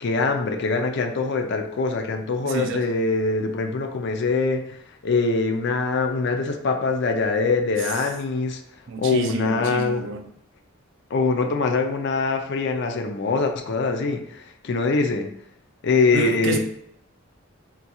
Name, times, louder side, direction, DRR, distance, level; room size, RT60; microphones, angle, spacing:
voice 1, 0.0-8.6 9.0-10.1 11.1-15.3 15.8-16.6, left 4 dB, 60° left, 5 dB, 0.4 m, -23 dB
voice 2, 2.4-2.8 8.9-10.2 16.1-16.6, right 5 dB, 65° right, 5 dB, 0.4 m, -29 dB
3.7 x 2.3 x 2.8 m, 0.72 s
head